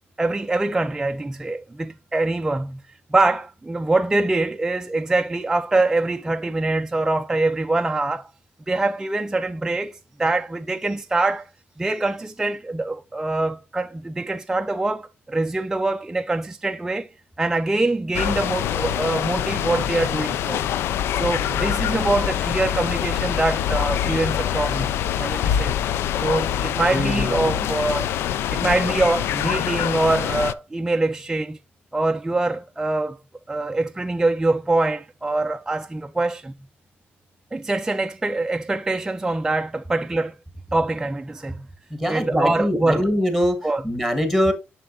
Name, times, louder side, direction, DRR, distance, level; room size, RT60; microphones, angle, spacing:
voice 1, 0.2-2.8 3.1-8.3 8.7-11.5 11.8-17.1 17.4-20.6 21.1-25.7 26.2-28.1 28.5-31.6 31.9-33.2 33.5-36.5 37.5-40.4 40.7-41.7 42.1-43.0 43.6-43.8, right 2 dB, 10° right, 0.3 m, -24 dB
sound 1, 18.1-30.5, left 10 dB, 80° left, 0.3 m, -25 dB
voice 2, 26.9-27.7 41.9-44.5, equal, 5° left, 1.4 m, -23 dB
7.7 x 6.0 x 2.5 m
cardioid pair, 110°, 4 cm